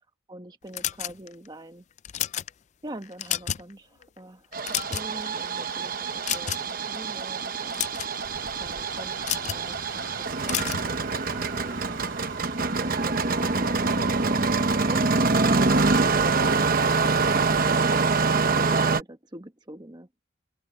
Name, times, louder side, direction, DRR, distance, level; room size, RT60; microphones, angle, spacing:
voice 1, 0.3-1.8 2.8-7.9 8.6-12.4 12.7-14.2 18.5-20.1, right 1 dB, 20° right, 1.4 m, -43 dB
sound 1, 0.7-1.5 2.0-2.5 3.0-3.7 4.0-4.2 4.5-5.3 6.2-6.8 7.5-8.1 9.2-9.6 10.4-10.9, left 11 dB, 35° left, 0.4 m, -30 dB
Engine starting, 4.5-19.0, right 4 dB, 45° right, 1.0 m, -25 dB
sound 2, 8.2-17.7, right 3 dB, 85° right, 6.7 m, -42 dB
open air
head